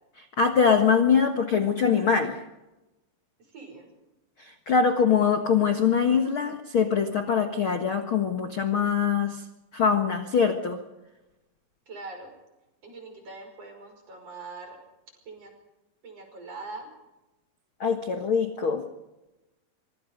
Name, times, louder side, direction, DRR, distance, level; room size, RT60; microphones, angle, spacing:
voice 1, 0.4-2.4 4.4-9.4 9.7-10.8 17.8-18.8, left 6 dB, 75° left, 6 dB, 1.2 m, -23 dB
voice 2, 3.5-3.9 11.9-12.3 12.8-14.8 15.3-15.5 16.0-16.9, right 3 dB, 35° right, 4 dB, 6.3 m, -42 dB
25.5 x 24.5 x 5.3 m, 0.98 s
omnidirectional pair, 4.9 m